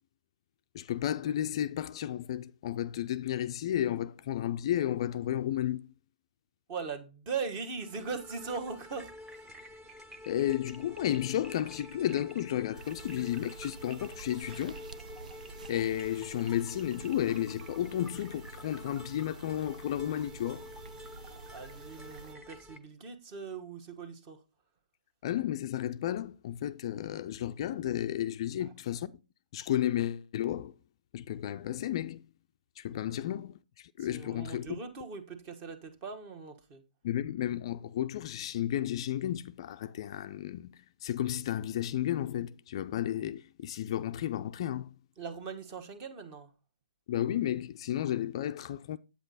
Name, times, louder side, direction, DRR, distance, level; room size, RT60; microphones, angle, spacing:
voice 1, 0.7-5.9 10.3-14.9 15.7-20.7 25.2-29.2 29.5-30.7 31.1-32.3 32.8-34.8 37.0-44.9 47.1-49.0, left 11 dB, 40° left, 0.4 m, -33 dB
voice 2, 6.7-9.5 21.3-24.4 28.6-28.7 32.9-33.2 34.0-36.8 45.2-46.5, right 5 dB, 30° right, 1.4 m, -40 dB
sound 1, 7.7-22.8, left 1 dB, 10° right, 0.8 m, -49 dB
sound 2, 12.7-22.3, right 4 dB, 65° right, 0.7 m, -49 dB
8.4 x 7.9 x 4.0 m
figure-of-eight pair, 140°, 4 cm